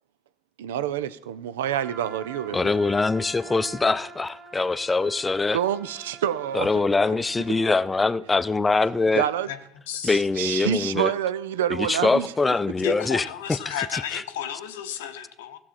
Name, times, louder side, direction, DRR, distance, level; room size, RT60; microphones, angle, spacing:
voice 1, 0.6-2.7 5.5-6.7 9.1-9.5 10.0-12.3, right 10 dB, 85° right, 0.4 m, -27 dB
Trumpet, 1.6-8.1, right 3 dB, 40° right, 1.9 m, -45 dB
voice 2, 2.5-5.6 6.5-9.2 10.0-11.1 11.7-13.2 13.7-14.2, left 3 dB, 20° left, 0.5 m, -23 dB
voice 3, 12.8-15.6, left 9 dB, 85° left, 0.8 m, -32 dB
15.5 x 7.4 x 4.2 m
hypercardioid pair, 70°, 0 cm